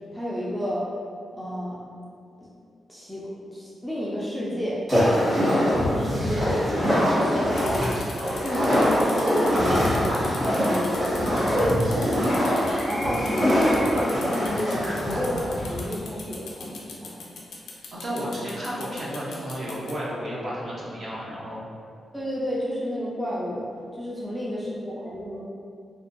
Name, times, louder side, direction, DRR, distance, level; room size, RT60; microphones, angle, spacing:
voice 1, 0.1-0.8 1.3-1.8 2.4-2.5 2.9-4.8 5.4-7.9 8.4-10.0 11.5-17.4 22.1-23.7 23.9-25.4, equal, ahead, -7 dB, 0.3 m, -30 dB
sound 1, 4.9-15.9, equal, 20° right, 1.1 m, -23 dB
sound 2, 7.5-19.9, left 4 dB, 85° left, 0.4 m, -41 dB
voice 2, 18.0-21.6, equal, 45° right, -6 dB, 0.6 m, -32 dB
2.5 x 2.1 x 2.4 m, 2.3 s
wide cardioid pair, 145°, 0 cm